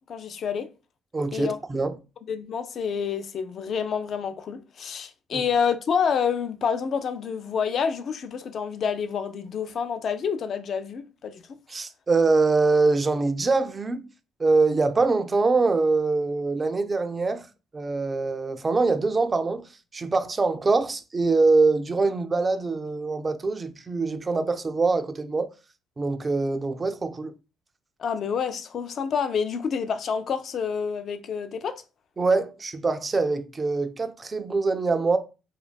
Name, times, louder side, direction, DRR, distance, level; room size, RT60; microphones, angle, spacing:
voice 1, 0.1-0.7 1.3-1.6 2.3-11.4 28.0-31.8, left 6 dB, 55° left, 0.3 m, -28 dB
voice 2, 1.1-2.0 5.3-5.4 11.7-14.0 14.4-17.5 17.7-25.5 26.0-27.3 32.2-35.2, right 3 dB, 30° right, 0.3 m, -24 dB
2.5 x 2.2 x 2.2 m
supercardioid pair, 80°, 0 cm